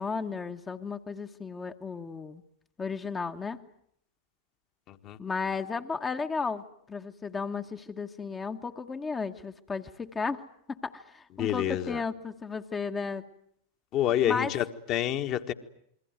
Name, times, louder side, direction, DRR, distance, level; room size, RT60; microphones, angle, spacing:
voice 1, 0.0-2.4 2.8-3.6 5.2-10.4 10.7-13.2 14.2-14.5, left 5 dB, 15° left, 1.3 m, -34 dB
voice 2, 4.9-5.2 11.4-12.0 13.9-15.5, left 11 dB, 35° left, 1.7 m, -28 dB
28.5 x 22.5 x 9.3 m
figure-of-eight pair, 90°, 0 cm